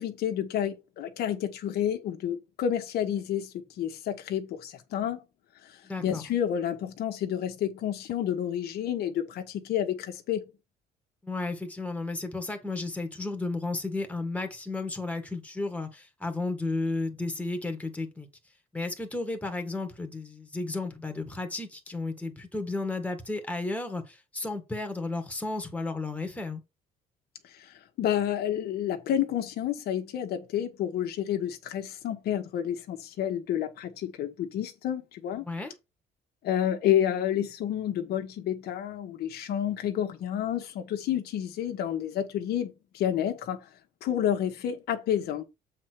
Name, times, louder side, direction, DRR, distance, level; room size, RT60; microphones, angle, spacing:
voice 1, 0.0-5.2 5.6-10.4 27.5-35.4 36.4-43.7 44.0-45.4, left 10 dB, 70° left, 1.4 m, -30 dB
voice 2, 5.8-6.2 11.2-18.3 18.7-26.6 35.4-35.7, left 2 dB, 10° left, 1.9 m, -33 dB
7.5 x 4.3 x 4.7 m
cardioid pair, 110°, 17 cm